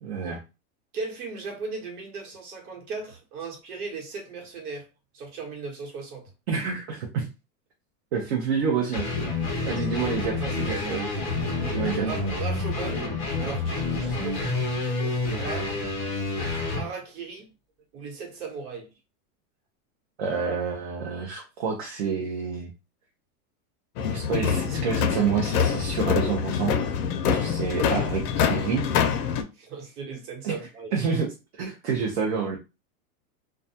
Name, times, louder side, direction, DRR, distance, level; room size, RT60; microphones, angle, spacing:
voice 1, 0.0-0.4 6.5-7.3 8.1-9.1 9.7-11.1 11.7-12.1 20.2-22.7 24.0-26.8 27.3-28.8 30.4-30.5 30.9-31.3 31.6-32.6, right 6 dB, 45° right, 0.5 m, -28 dB
voice 2, 0.9-4.9 5.1-6.3 10.3-10.9 12.0-15.8 16.8-17.5 17.9-18.9 29.5-30.9, right 4 dB, 80° right, 1.2 m, -37 dB
sound 1, 8.9-16.9, left 3 dB, 25° left, 0.4 m, -28 dB
sound 2, 24.0-29.4, left 7 dB, 90° left, 0.6 m, -25 dB
2.3 x 2.2 x 2.6 m
supercardioid pair, 175°, 45 cm